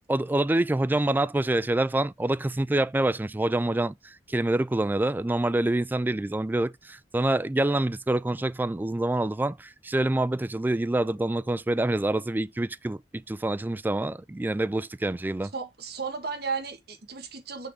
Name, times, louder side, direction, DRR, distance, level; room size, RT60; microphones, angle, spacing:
voice 1, 0.1-15.5, right 1 dB, 10° right, 0.3 m, -26 dB
voice 2, 15.5-17.7, right 5 dB, 65° right, 1.6 m, -34 dB
6.3 x 5.0 x 3.6 m
head